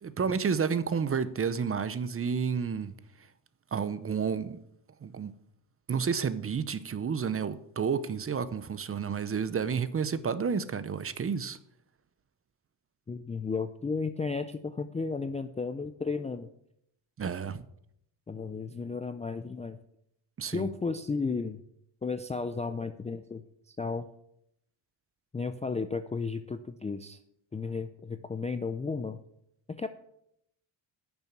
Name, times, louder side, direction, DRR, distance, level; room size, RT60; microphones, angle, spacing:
voice 1, 0.0-2.9 3.7-4.6 5.0-5.3 5.9-11.6 17.2-17.6 20.4-20.7, right 6 dB, 30° right, 0.6 m, -30 dB
voice 2, 13.1-16.5 18.3-19.8 20.5-21.6 22.0-24.1 25.3-27.2 27.5-29.2 29.7-29.9, left 4 dB, 15° left, 0.4 m, -34 dB
10.5 x 7.0 x 8.9 m
cardioid pair, 160°, 49 cm